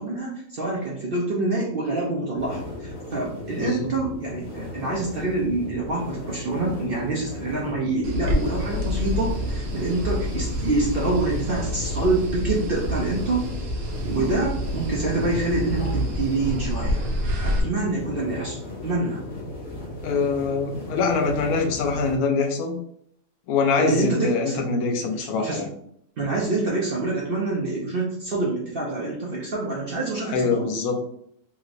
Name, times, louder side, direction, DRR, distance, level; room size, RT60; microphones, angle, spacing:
voice 1, 0.0-13.4 14.0-17.0 17.4-19.2 23.8-24.6 24.9-25.7 26.2-30.9, right 2 dB, 60° right, -4 dB, 0.6 m, -26 dB
sound 1, 2.4-22.2, left 2 dB, 60° left, 1.3 m, -36 dB
voice 2, 3.6-3.9 20.0-22.8 23.5-25.7 30.3-30.9, left 4 dB, 85° left, 3 dB, 1.1 m, -24 dB
sound 2, 8.0-17.6, equal, 75° right, 1.1 m, -28 dB
3.1 x 3.0 x 2.5 m, 0.69 s
omnidirectional pair, 1.5 m